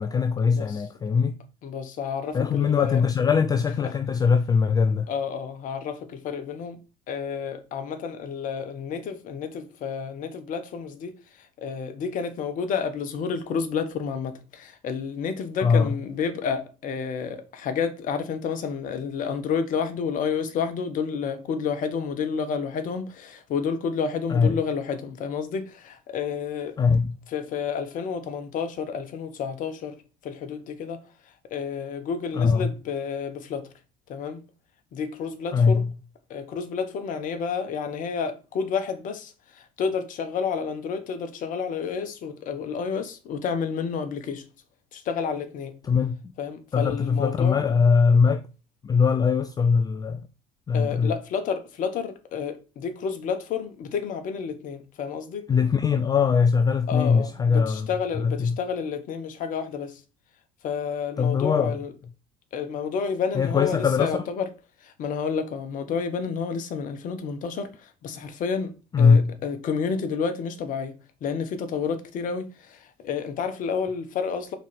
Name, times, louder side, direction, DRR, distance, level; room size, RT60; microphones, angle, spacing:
voice 1, 0.0-1.4 2.3-5.1 15.6-16.0 24.3-24.6 26.8-27.2 32.3-32.7 35.5-35.9 45.8-46.2 46.7-48.4 48.8-50.3 50.7-51.2 55.5-57.9 58.1-58.6 61.2-61.8 63.3-64.1 68.9-69.4, left 5 dB, 20° left, 0.4 m, -21 dB
voice 2, 1.6-3.0 3.8-4.0 5.1-6.8 7.1-26.8 27.3-33.7 34.1-34.4 34.9-35.8 36.3-44.4 44.9-45.8 46.4-47.8 50.7-55.5 56.9-60.0 60.6-61.9 62.5-64.5 64.8-74.5, left 6 dB, 45° left, 1.2 m, -30 dB
5.0 x 4.5 x 5.2 m
figure-of-eight pair, 60°, 18 cm